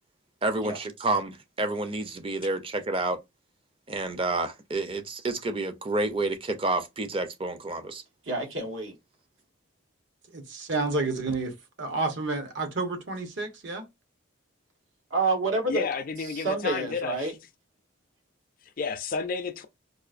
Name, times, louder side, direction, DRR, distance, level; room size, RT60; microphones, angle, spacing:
voice 1, 0.4-3.2 3.9-8.0, right 2 dB, 25° right, 0.5 m, -29 dB
voice 2, 8.3-8.9 15.1-15.8 16.3-17.3, right 3 dB, 80° right, 1.2 m, -28 dB
voice 3, 10.3-13.9, right 3 dB, 65° right, 1.0 m, -30 dB
voice 4, 15.7-17.4 18.6-19.7, left 5 dB, 45° left, 0.4 m, -31 dB
4.8 x 2.5 x 2.4 m
head